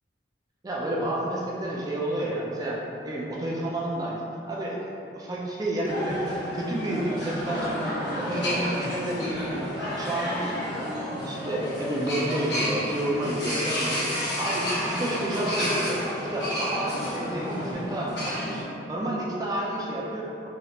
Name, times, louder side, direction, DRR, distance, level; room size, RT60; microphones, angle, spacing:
voice 1, 0.6-10.9 11.2-16.0 16.3-20.5, right 1 dB, 20° right, -4 dB, 0.3 m, -30 dB
sound 1, 5.8-18.6, equal, 65° left, 1.1 m, -30 dB
3.1 x 2.4 x 2.8 m, 2.6 s
head